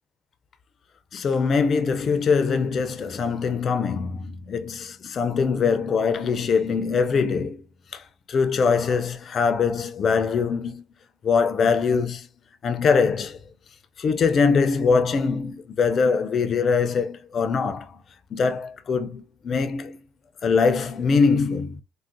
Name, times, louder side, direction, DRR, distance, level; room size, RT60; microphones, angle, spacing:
voice 1, 1.1-7.6 7.9-8.0 8.3-10.8 11.2-12.3 12.6-13.4 14.0-18.0 18.3-20.0 20.4-21.8, left 5 dB, 45° left, 0.4 m, -22 dB
3.6 x 2.1 x 2.6 m
cardioid pair, 105°, 0 cm